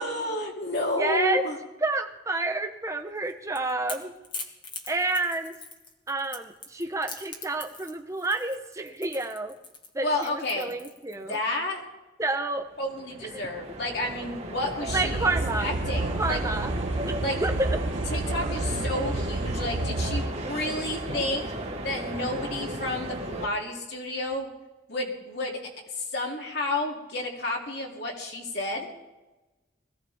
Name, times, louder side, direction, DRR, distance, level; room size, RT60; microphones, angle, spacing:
voice 1, 0.0-1.6 10.0-10.7 11.2-11.8 12.8-15.3 15.6-16.4 17.2-17.4 18.1-21.5 21.8-24.5 24.9-25.6 25.9-28.9, left 1 dB, 55° left, -1 dB, 2.9 m, -31 dB
voice 2, 1.0-1.4 1.8-4.1 4.9-5.5 6.1-9.5 9.9-11.4 12.2-12.7 13.3-13.5 14.9-15.7 16.2-16.7 17.0-17.8, right 2 dB, 15° right, 5 dB, 1.0 m, -29 dB
Crackle / Crack, 3.2-11.3, left 4 dB, 25° left, 1.4 m, -42 dB
sound 1, 12.6-23.5, right 1 dB, 35° right, 1.6 m, -35 dB
sound 2, 14.9-20.3, right 2 dB, 75° right, 0.9 m, -30 dB
21.5 x 16.0 x 3.6 m, 1.1 s
head